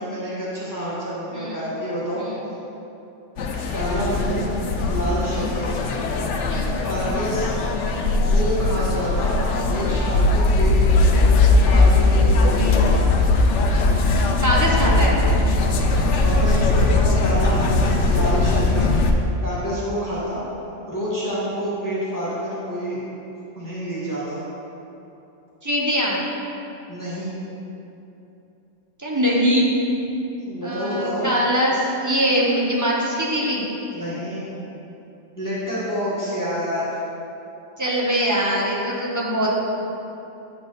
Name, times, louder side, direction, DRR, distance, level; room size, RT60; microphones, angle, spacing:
voice 1, 0.0-2.2 3.7-4.4 4.9-5.7 6.8-7.5 8.2-9.4 9.6-10.7 11.7-13.1 15.8-20.4 20.9-23.0 23.5-24.4 26.9-27.3 30.4-31.3 33.9-34.5 35.4-37.0 39.4-39.5, equal, 15° left, -10 dB, 1.7 m, -28 dB
voice 2, 1.3-1.7 2.2-2.3 5.3-5.5 6.5-6.8 14.4-15.2 25.6-26.2 29.0-29.6 30.6-33.7 37.8-39.5, equal, 15° right, -4 dB, 1.0 m, -22 dB
sound 1, 3.4-19.1, left 2 dB, 70° left, 0.9 m, -19 dB
9.5 x 4.8 x 4.1 m, 2.9 s
omnidirectional pair, 1.3 m